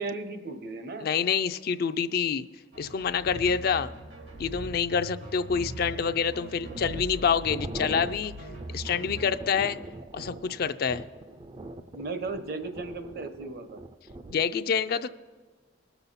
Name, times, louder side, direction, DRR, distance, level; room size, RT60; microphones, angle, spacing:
voice 1, 0.0-1.1 11.9-13.8, right 3 dB, 55° right, 8 dB, 0.9 m, -35 dB
voice 2, 1.0-2.5 2.8-3.9 4.4-8.3 8.7-9.8 10.1-11.0 14.3-15.1, left 6 dB, 55° left, 10 dB, 0.4 m, -27 dB
sound 1, 2.7-9.3, right 1 dB, 85° right, 2.6 m, -41 dB
sound 2, 6.6-14.5, right 2 dB, 25° right, 0.4 m, -42 dB
19.5 x 7.0 x 4.1 m, 1.4 s
head